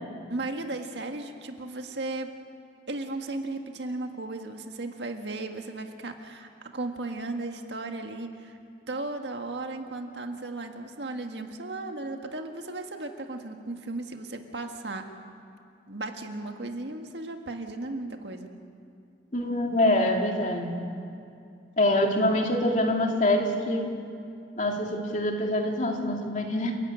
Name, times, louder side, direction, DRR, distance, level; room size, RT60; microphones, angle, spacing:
voice 1, 0.3-2.3 2.9-8.6 8.9-15.1 15.9-18.5, right 2 dB, 80° right, 5 dB, 1.7 m, -35 dB
voice 2, 19.3-20.8 21.8-23.9 24.6-26.7, left 1 dB, 45° left, 1 dB, 2.5 m, -25 dB
29.5 x 11.5 x 8.9 m, 2.5 s
head